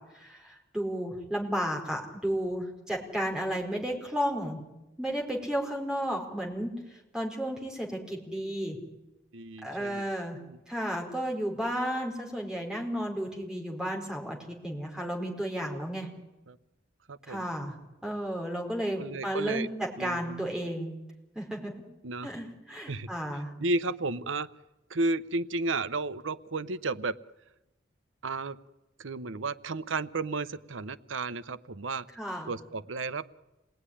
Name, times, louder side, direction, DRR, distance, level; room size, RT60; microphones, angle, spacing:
voice 1, 0.1-4.6 5.0-6.7 7.1-8.8 9.6-10.4 10.7-16.1 17.3-17.7 18.0-20.9 21.3-21.7 22.2-23.5 32.2-32.5, equal, 5° right, 0 dB, 4.3 m, -33 dB
voice 2, 9.3-10.0 10.4-10.6 16.5-16.6 17.1-17.5 18.9-19.7 20.0-20.4 22.0-22.3 22.9-23.1 23.6-24.5 24.9-27.2 28.2-28.6 29.0-32.0 32.5-33.3, right 3 dB, 85° right, 15 dB, 0.9 m, -33 dB
27.5 x 19.5 x 10.0 m, 1.0 s
head